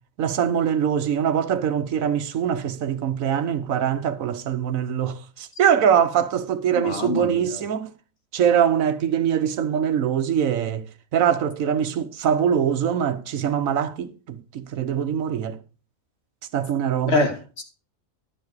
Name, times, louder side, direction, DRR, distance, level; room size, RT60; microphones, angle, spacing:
voice 1, 0.2-7.9 8.3-10.9 11.1-15.6 16.5-17.2, right 8 dB, 80° right, 1.3 m, -23 dB
voice 2, 6.7-7.6 17.1-17.6, left 3 dB, 50° left, 2.2 m, -26 dB
11.0 x 7.3 x 4.7 m
omnidirectional pair, 1.4 m